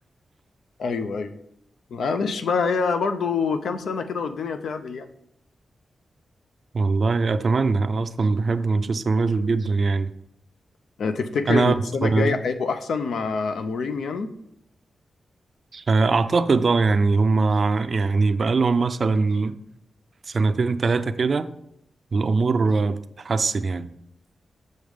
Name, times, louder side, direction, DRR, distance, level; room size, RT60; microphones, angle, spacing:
voice 1, 0.8-1.4 1.9-5.1 11.0-14.3, left 5 dB, 85° left, 0.5 m, -26 dB
voice 2, 6.7-10.1 11.5-12.4 15.7-19.6 20.3-21.5 22.1-23.9, right 4 dB, 45° right, 0.4 m, -21 dB
6.4 x 6.3 x 3.5 m
wide cardioid pair, 115°, 0 cm